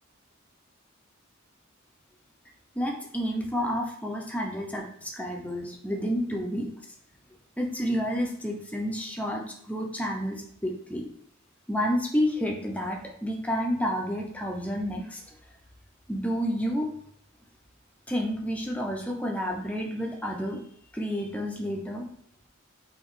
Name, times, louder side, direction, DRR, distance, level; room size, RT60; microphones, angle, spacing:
voice 1, 2.7-6.7 7.6-11.1 11.7-15.2 16.1-16.9 18.1-20.6 20.9-22.1, equal, 5° left, 0 dB, 0.7 m, -30 dB
4.0 x 3.0 x 3.9 m, 0.63 s
head